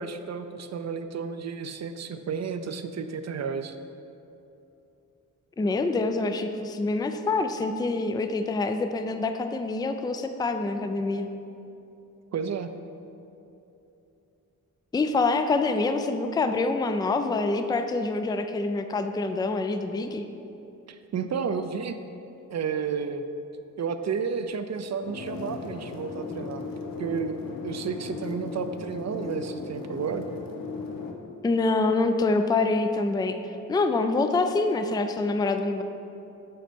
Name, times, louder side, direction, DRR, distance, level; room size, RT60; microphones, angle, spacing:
voice 1, 0.0-3.8 12.3-12.7 20.9-22.0 22.5-23.2 23.8-26.6 27.0-30.3, right 6 dB, 50° right, 9 dB, 0.5 m, -32 dB
voice 2, 5.6-11.3 14.9-20.3 31.4-35.8, left 3 dB, 15° left, 7 dB, 0.3 m, -26 dB
sound 1, 25.0-31.1, left 4 dB, 80° left, 0.8 m, -37 dB
7.7 x 4.3 x 5.2 m, 2.9 s
cardioid pair, 80°, 34 cm